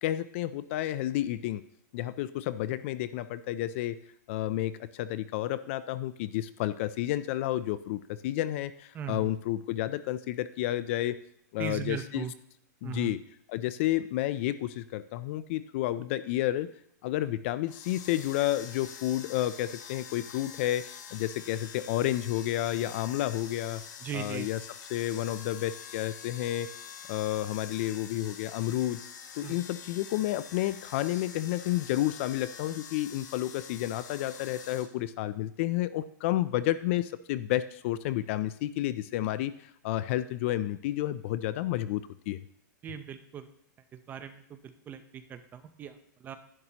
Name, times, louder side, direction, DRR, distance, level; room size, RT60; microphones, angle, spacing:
voice 1, 0.0-1.6 1.9-4.0 4.3-11.2 11.5-12.2 12.8-13.2 13.5-16.7 17.0-20.8 21.1-23.8 24.1-24.6 24.9-26.7 27.1-29.0 29.4-42.4, left 14 dB, 40° left, 15 dB, 0.4 m, -31 dB
voice 2, 8.9-9.3 11.6-12.3 12.8-13.1 24.0-24.5 29.4-29.6 42.8-43.5 43.9-46.4, right 8 dB, 20° right, 9 dB, 0.7 m, -39 dB
sound 1, 17.6-34.9, left 7 dB, 70° left, 1.3 m, -46 dB
11.0 x 10.5 x 2.9 m, 0.73 s
hypercardioid pair, 150°, 10 cm